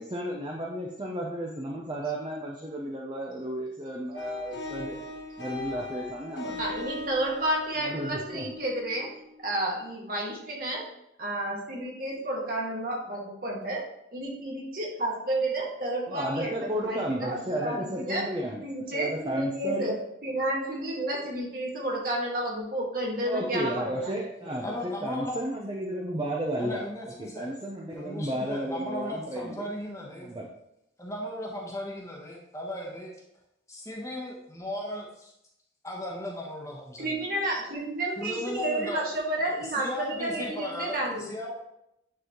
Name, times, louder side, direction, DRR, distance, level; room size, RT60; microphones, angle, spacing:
voice 1, 0.0-5.0 5.4-6.6 7.8-8.5 16.1-19.9 23.2-26.8 27.2-29.7 30.2-30.5, right 1 dB, 25° right, -1 dB, 0.7 m, -33 dB
sound 1, 4.1-9.6, left 2 dB, 75° left, 1.1 m, -39 dB
voice 2, 6.6-9.1 9.4-10.8 11.2-13.9 14.1-18.2 18.6-24.1 37.0-41.3, right 1 dB, 50° right, -2 dB, 1.7 m, -31 dB
voice 3, 24.4-25.4 26.6-27.5 27.9-30.3 31.0-33.1 33.7-35.3 35.8-37.4 38.2-39.1 39.6-41.5, left 1 dB, 15° left, -2 dB, 1.1 m, -36 dB
9.5 x 4.1 x 3.1 m, 0.82 s
head